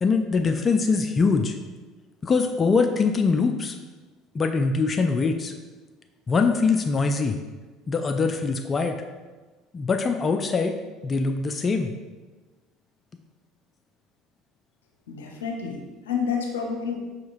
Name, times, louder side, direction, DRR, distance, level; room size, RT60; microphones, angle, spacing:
voice 1, 0.0-1.6 2.2-3.8 4.3-5.5 6.3-7.4 7.9-9.0 9.7-10.8 11.0-11.9, left 4 dB, 30° left, 5 dB, 0.3 m, -23 dB
voice 2, 15.1-17.0, left 6 dB, 80° left, 2 dB, 0.5 m, -29 dB
5.5 x 2.8 x 2.6 m, 1.3 s
hypercardioid pair, 70°, 0 cm